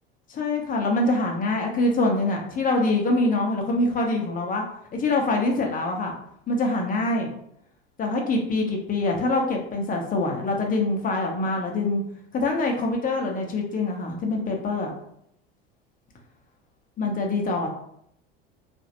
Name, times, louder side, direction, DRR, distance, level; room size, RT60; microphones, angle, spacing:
voice 1, 0.3-4.6 4.9-6.1 6.5-7.3 8.0-12.0 12.3-14.9 17.0-17.7, left 2 dB, 30° left, 1 dB, 0.9 m, -24 dB
2.9 x 2.5 x 2.9 m, 0.73 s
hypercardioid pair, 75°, 30 cm